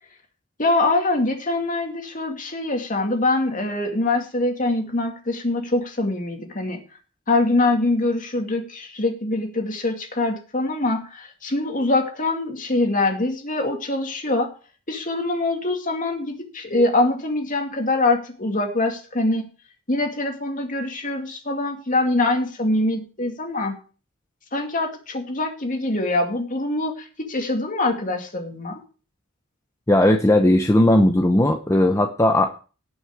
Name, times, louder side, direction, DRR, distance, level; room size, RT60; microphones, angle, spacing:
voice 1, 0.6-6.8 7.3-14.5 14.9-19.5 19.9-23.8 24.5-28.8, left 2 dB, 40° left, 3 dB, 2.4 m, -24 dB
voice 2, 29.9-32.6, left 1 dB, 15° left, 4 dB, 0.8 m, -17 dB
18.0 x 6.4 x 4.8 m, 0.36 s
head